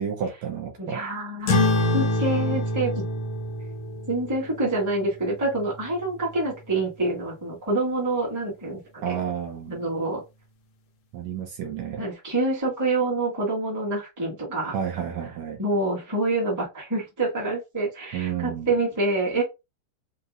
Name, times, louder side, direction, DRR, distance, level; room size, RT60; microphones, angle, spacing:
voice 1, 0.0-1.0 9.0-9.8 11.1-12.0 14.7-15.6 18.1-18.7, right 8 dB, 70° right, 1.9 m, -31 dB
voice 2, 0.8-1.7 1.9-3.0 4.1-9.2 9.7-10.2 12.0-14.8 15.6-19.4, right 2 dB, 10° right, 1.1 m, -26 dB
sound 1, 1.5-6.3, left 1 dB, 80° left, 1.1 m, -27 dB
5.4 x 3.0 x 2.5 m
omnidirectional pair, 3.7 m